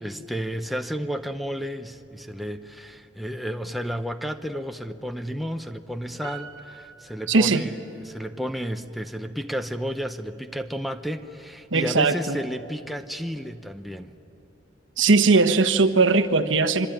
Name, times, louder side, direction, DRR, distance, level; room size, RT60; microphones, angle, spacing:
voice 1, 0.0-14.1, equal, ahead, 6 dB, 0.7 m, -32 dB
Piano, 6.2-8.0 8.3-8.4, right 7 dB, 20° right, 2.1 m, -45 dB
voice 2, 7.3-7.6 11.7-12.4 15.0-16.9, right 3 dB, 75° right, 9 dB, 1.2 m, -19 dB
25.5 x 25.0 x 9.1 m, 2.8 s
head